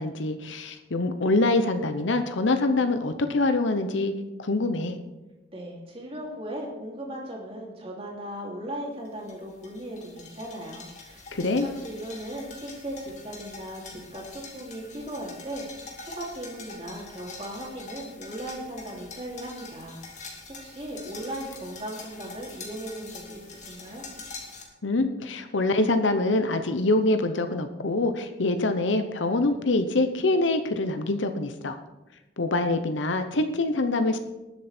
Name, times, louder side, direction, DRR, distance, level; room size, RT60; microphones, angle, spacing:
voice 1, 0.0-4.1 4.4-5.0 11.3-11.7 24.8-31.8 32.4-34.2, left 2 dB, 85° left, 8 dB, 0.9 m, -25 dB
voice 2, 5.5-24.0, right 1 dB, 30° right, -2 dB, 2.9 m, -38 dB
sound 1, 9.0-24.6, left 3 dB, 40° left, 2.1 m, -44 dB
19.5 x 7.6 x 4.4 m, 1.1 s
head